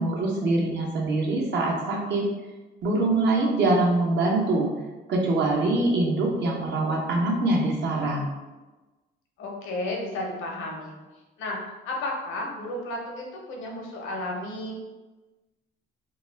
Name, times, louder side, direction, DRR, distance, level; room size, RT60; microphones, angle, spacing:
voice 1, 0.0-2.3 2.8-4.7 5.1-8.3, right 2 dB, 60° right, -2 dB, 0.8 m, -24 dB
voice 2, 9.4-10.9 11.4-11.6 11.8-14.9, left 1 dB, 90° left, 0 dB, 0.7 m, -33 dB
2.3 x 2.3 x 3.2 m, 1.2 s
cardioid pair, 90°, 20 cm